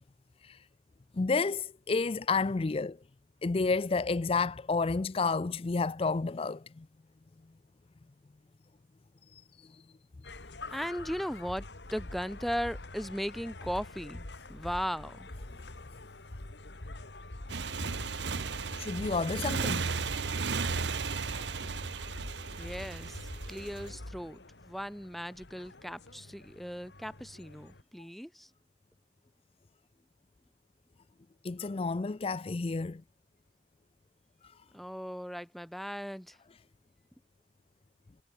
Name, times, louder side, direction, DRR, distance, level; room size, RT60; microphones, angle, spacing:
voice 1, 1.2-3.0 3.4-6.8 9.3-9.4 18.8-19.9 31.4-33.0, left 4 dB, 35° left, 0.4 m, -30 dB
sound 1, 10.2-27.8, left 2 dB, 75° left, 2.2 m, -46 dB
voice 2, 10.7-11.6 11.9-15.3 22.6-23.2 23.5-28.5 34.7-36.4, equal, ahead, 1.4 m, -37 dB
Motorcycle, 17.5-23.9, right 4 dB, 80° right, 1.0 m, -35 dB
head